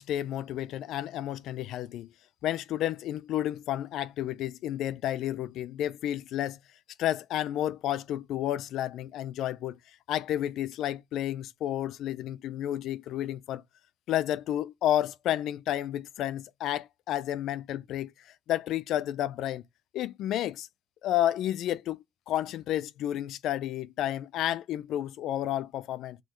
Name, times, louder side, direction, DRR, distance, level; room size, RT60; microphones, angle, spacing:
voice 1, 0.0-2.1 2.4-6.6 7.0-9.8 10.1-13.6 14.1-19.6 19.9-20.7 21.0-26.2, left 12 dB, 70° left, 0.4 m, -31 dB
5.5 x 2.7 x 3.0 m
cardioid pair, 165°, 0 cm